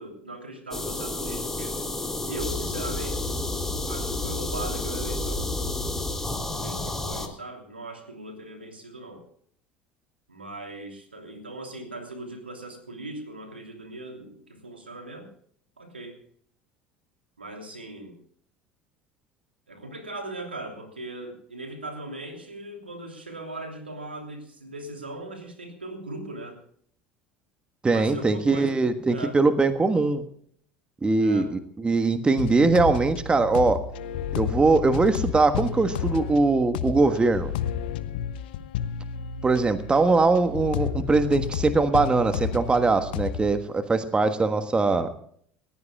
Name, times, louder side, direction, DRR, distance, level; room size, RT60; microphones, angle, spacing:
voice 1, 0.0-1.8 2.3-3.3 3.8-5.5 6.5-9.2 10.3-15.3 15.8-16.2 17.4-18.2 19.7-26.6 27.9-28.8 29.1-29.4 31.2-31.5, right 2 dB, 80° right, 4 dB, 3.0 m, -39 dB
sound 1, 0.7-7.3, left 2 dB, 5° left, 3.2 m, -30 dB
voice 2, 27.8-30.2 31.0-33.8 34.4-37.5 39.4-45.1, right 3 dB, 15° right, 9 dB, 1.4 m, -21 dB
sound 2, 32.4-43.5, left 8 dB, 65° left, 1.1 m, -31 dB
28.5 x 15.0 x 2.3 m, 0.62 s
figure-of-eight pair, 70°, 6 cm